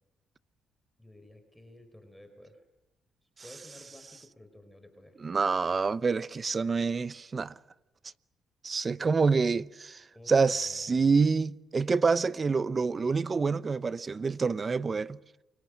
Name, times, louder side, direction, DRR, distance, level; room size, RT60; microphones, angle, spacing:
voice 1, 1.0-2.6 3.2-5.2 10.1-11.1, left 1 dB, 5° left, 4.5 m, -53 dB
voice 2, 5.2-7.5 8.6-15.2, right 4 dB, 35° right, 0.8 m, -27 dB
29.5 x 24.0 x 6.5 m
cardioid pair, 85°, 0 cm